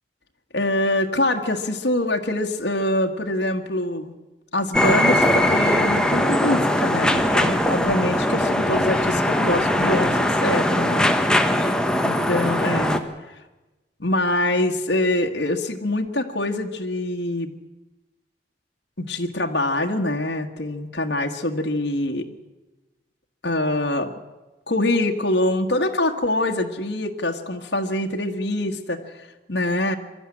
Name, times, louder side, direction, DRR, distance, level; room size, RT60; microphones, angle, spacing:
voice 1, 0.5-4.1 4.5-11.4 12.0-13.0 14.0-17.5 19.0-22.2 23.4-24.1 24.7-30.0, left 1 dB, 70° left, 3 dB, 1.6 m, -24 dB
sound 1, 4.7-13.0, left 1 dB, 5° left, 1.3 m, -20 dB
23.0 x 13.0 x 9.9 m, 1.1 s
head